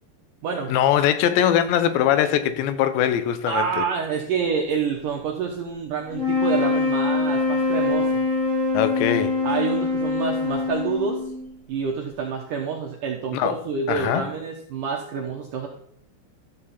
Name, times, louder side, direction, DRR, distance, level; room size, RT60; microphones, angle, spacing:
voice 1, 0.7-3.8 8.7-9.4 13.3-13.6 13.9-14.3, left 10 dB, 85° left, 3.0 m, -21 dB
voice 2, 3.5-8.2 9.4-11.2 11.7-15.7, right 6 dB, 75° right, 1.9 m, -27 dB
sound 1, 6.1-11.5, left 3 dB, 25° left, 3.9 m, -24 dB
13.0 x 7.5 x 4.2 m
omnidirectional pair, 5.0 m